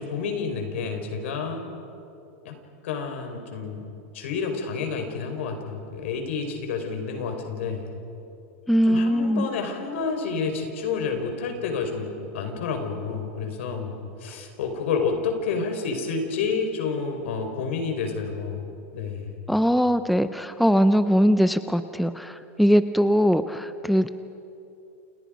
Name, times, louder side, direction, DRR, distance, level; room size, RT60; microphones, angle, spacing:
voice 1, 0.0-1.7 2.4-2.5 2.8-3.8 4.1-7.9 8.8-18.6 18.9-19.3, left 5 dB, 70° left, 5 dB, 4.8 m, -29 dB
voice 2, 8.7-9.5 19.5-24.1, equal, ahead, 11 dB, 0.5 m, -21 dB
30.0 x 29.0 x 5.2 m, 2.8 s
supercardioid pair, 160°, 7 cm